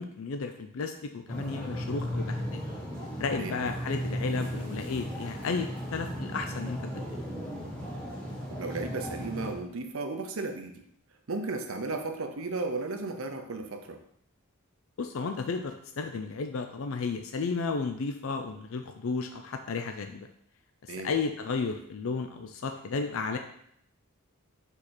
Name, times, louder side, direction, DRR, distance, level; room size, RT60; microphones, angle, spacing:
voice 1, 0.0-2.6 3.2-7.2 15.0-20.3 20.8-23.4, left 4 dB, 65° left, 6 dB, 0.4 m, -33 dB
sound 1, 1.3-9.5, equal, 5° left, 1.4 m, -36 dB
voice 2, 8.6-10.8 11.3-14.0 20.9-21.1, right 3 dB, 70° right, 5 dB, 0.8 m, -34 dB
4.9 x 4.8 x 4.3 m, 0.70 s
head